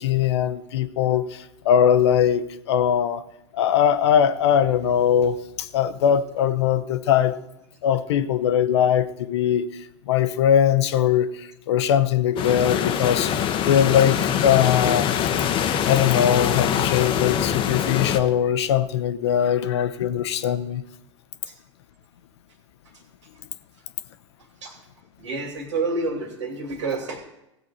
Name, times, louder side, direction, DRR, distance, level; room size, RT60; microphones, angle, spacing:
voice 1, 0.0-3.2 3.5-7.4 7.8-9.7 10.1-15.2 15.9-20.8, left 9 dB, 60° left, 0.7 m, -21 dB
sound 1, 12.4-18.2, left 9 dB, 35° left, 0.9 m, -23 dB
voice 2, 25.2-27.2, right 3 dB, 70° right, 2.5 m, -28 dB
16.5 x 7.7 x 4.2 m
figure-of-eight pair, 90°, 16 cm